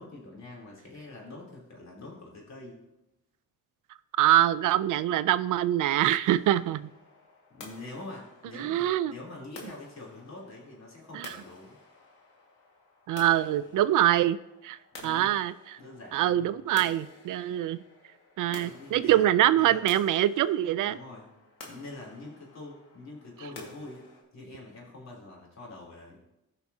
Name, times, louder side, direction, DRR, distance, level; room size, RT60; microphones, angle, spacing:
voice 1, 0.0-2.8 7.6-11.8 13.7-13.8 15.0-15.3 15.8-16.6 18.5-19.8 20.8-21.3 21.7-24.1 24.3-26.2, left 2 dB, 55° left, -3 dB, 3.4 m, -45 dB
voice 2, 4.2-6.9 8.6-9.1 11.1-11.3 13.1-14.4 14.6-14.8 15.0-15.5 16.1-17.8 18.4-21.0, right 12 dB, 75° right, 15 dB, 0.5 m, -24 dB
sound 1, 6.2-24.2, left 3 dB, 90° left, 2.0 m, -51 dB
15.0 x 5.7 x 2.8 m, 0.86 s
cardioid pair, 75°, 32 cm